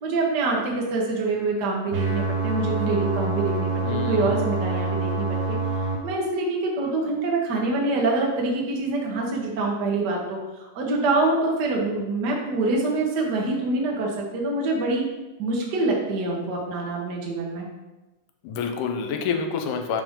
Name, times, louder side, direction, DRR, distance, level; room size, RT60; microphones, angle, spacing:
voice 1, 0.0-5.6 6.0-15.0 15.4-17.7, right 2 dB, 85° right, -2 dB, 0.9 m, -25 dB
sound 1, 1.9-6.0, right 4 dB, 65° right, 2.2 m, -26 dB
voice 2, 3.8-4.5 18.4-20.0, left 6 dB, 80° left, 4 dB, 2.1 m, -28 dB
5.1 x 3.6 x 5.4 m, 1.1 s
omnidirectional pair, 3.6 m